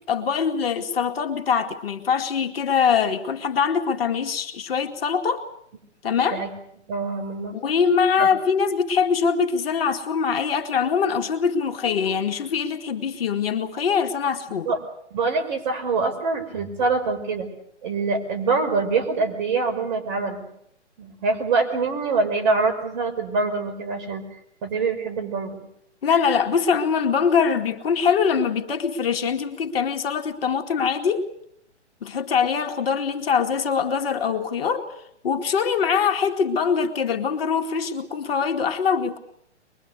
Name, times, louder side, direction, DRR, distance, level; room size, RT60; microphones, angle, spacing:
voice 1, 0.1-5.5 6.0-6.4 7.5-14.7 26.0-31.3 32.0-35.0 35.2-39.2, left 6 dB, 55° left, 5 dB, 2.3 m, -23 dB
voice 2, 6.9-7.5 8.2-8.3 14.7-14.8 15.1-17.5 17.8-20.5 21.0-24.3 24.6-25.6, right 4 dB, 40° right, 6 dB, 5.8 m, -24 dB
23.0 x 22.5 x 8.3 m, 0.73 s
hypercardioid pair, 140°, 35 cm